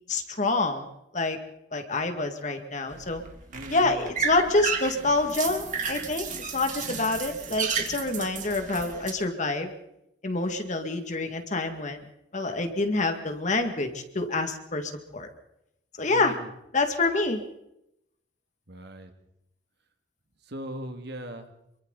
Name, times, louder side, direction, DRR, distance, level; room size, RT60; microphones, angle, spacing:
voice 1, 0.1-0.9 1.1-1.4 1.7-3.2 3.7-6.3 6.5-9.7 10.2-12.0 12.3-15.3 16.0-16.3 16.7-17.4, left 2 dB, 40° left, 6 dB, 2.1 m, -27 dB
sound 1, 2.9-9.1, right 5 dB, 40° right, 3.0 m, -33 dB
voice 2, 3.5-4.1 16.0-16.5 18.7-19.1 20.5-21.5, equal, 60° right, 6 dB, 2.3 m, -39 dB
27.0 x 23.5 x 4.1 m, 0.81 s
head